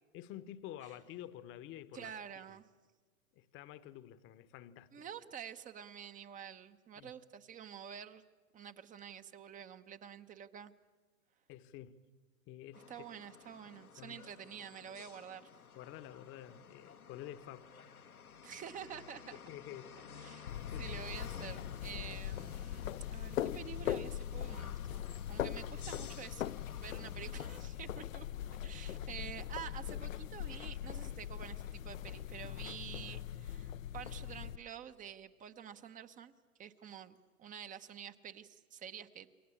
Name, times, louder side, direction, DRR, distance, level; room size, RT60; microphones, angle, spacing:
voice 1, 0.1-2.6 3.3-5.0 7.0-7.2 11.5-12.0 12.5-13.1 14.0-14.2 15.7-17.7 19.3-20.3 20.7-21.0, left 12 dB, 30° left, 1.1 m, -50 dB
voice 2, 1.9-2.6 4.9-8.2 8.5-10.7 12.9-15.5 18.4-19.4 20.2-20.5 20.8-25.0 25.3-28.3 28.6-36.3 36.6-39.3, right 8 dB, 20° right, 0.9 m, -49 dB
sound 1, 12.7-27.6, left 6 dB, 80° left, 1.5 m, -54 dB
sound 2, 20.5-34.6, left 11 dB, 65° left, 0.8 m, -41 dB
28.5 x 24.0 x 8.6 m
figure-of-eight pair, 110°, 43 cm